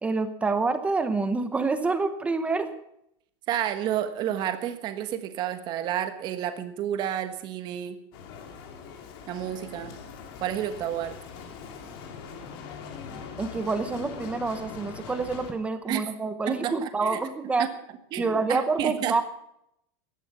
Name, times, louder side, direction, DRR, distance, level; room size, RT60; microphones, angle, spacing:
voice 1, 0.0-2.7 13.4-17.7 18.2-19.2, right 3 dB, 10° right, 9 dB, 0.9 m, -27 dB
voice 2, 3.5-8.0 9.3-9.9 10.4-11.1 15.9-16.1 16.5-17.2 17.6-17.7 18.1-19.2, right 10 dB, 30° right, 9 dB, 1.4 m, -30 dB
Bicycle, 8.1-15.5, left 6 dB, 55° left, 2.6 m, -42 dB
15.5 x 11.0 x 6.1 m, 0.76 s
supercardioid pair, 170°, 15 cm